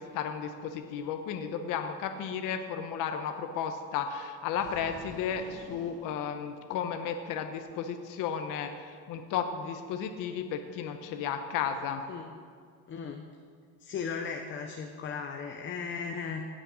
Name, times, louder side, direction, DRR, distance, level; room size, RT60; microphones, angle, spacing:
voice 1, 0.0-12.0, left 7 dB, 60° left, 6 dB, 1.0 m, -34 dB
sound 1, 4.5-7.0, right 2 dB, 75° right, 3.5 m, -49 dB
voice 2, 12.9-13.3 13.8-16.5, left 5 dB, 35° left, 4 dB, 0.8 m, -36 dB
17.5 x 6.6 x 6.2 m, 2.1 s
cardioid pair, 140°, 35 cm